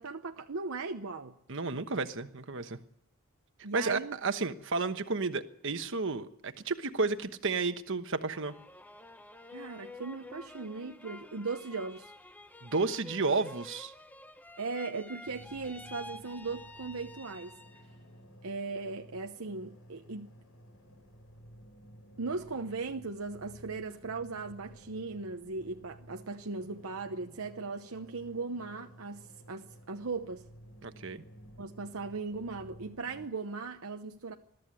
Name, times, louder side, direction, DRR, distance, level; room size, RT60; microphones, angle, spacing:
voice 1, 0.0-1.3 3.6-4.2 9.5-12.1 14.6-17.5 18.4-20.3 22.2-30.5 31.6-34.3, right 4 dB, 75° right, 0.9 m, -38 dB
voice 2, 1.5-2.8 3.7-8.6 12.6-13.9 30.8-31.2, right 3 dB, 60° right, 1.2 m, -32 dB
sound 1, 8.2-18.0 18.4-19.1, left 2 dB, 10° left, 0.8 m, -50 dB
sound 2, 15.2-33.3, equal, 85° left, 4.8 m, -54 dB
21.5 x 13.5 x 9.8 m
head